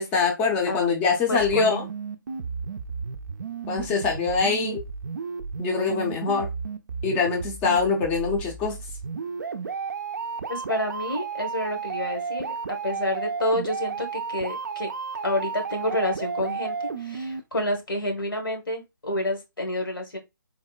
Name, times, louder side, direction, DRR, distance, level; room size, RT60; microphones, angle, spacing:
voice 1, 0.0-1.8 3.7-4.8 5.6-6.5 7.0-8.8, left 5 dB, 15° left, 2 dB, 0.5 m, -24 dB
voice 2, 1.3-1.8 10.5-12.5 12.8-14.9 15.2-20.2, left 1 dB, 80° left, 4 dB, 1.2 m, -29 dB
sound 1, 1.4-17.4, right 5 dB, 55° right, 0.4 m, -33 dB
3.7 x 2.0 x 2.3 m, 0.23 s
figure-of-eight pair, 145°, 11 cm